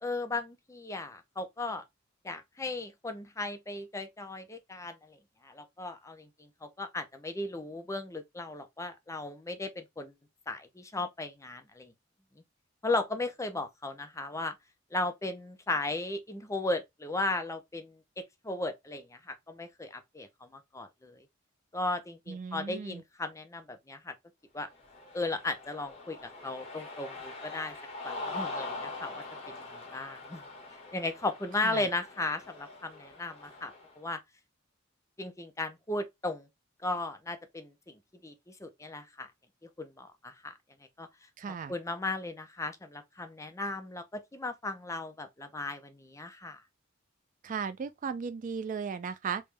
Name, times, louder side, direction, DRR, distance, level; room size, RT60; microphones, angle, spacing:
voice 1, 0.0-1.8 2.2-5.2 5.4-10.1 10.5-11.9 12.8-14.5 14.9-18.0 18.4-21.2 21.7-24.1 24.5-24.7 25.1-27.7 28.0-30.4 30.9-34.2 35.2-36.5 36.8-39.3 39.8-40.5 41.0-41.1 41.7-46.6, left 2 dB, 15° left, 0.6 m, -36 dB
voice 2, 22.3-23.0 31.6-31.8 41.4-41.7 47.4-49.4, right 6 dB, 40° right, 0.3 m, -36 dB
Cheering, 24.7-33.9, left 3 dB, 30° left, 1.5 m, -43 dB
3.5 x 3.1 x 3.3 m
head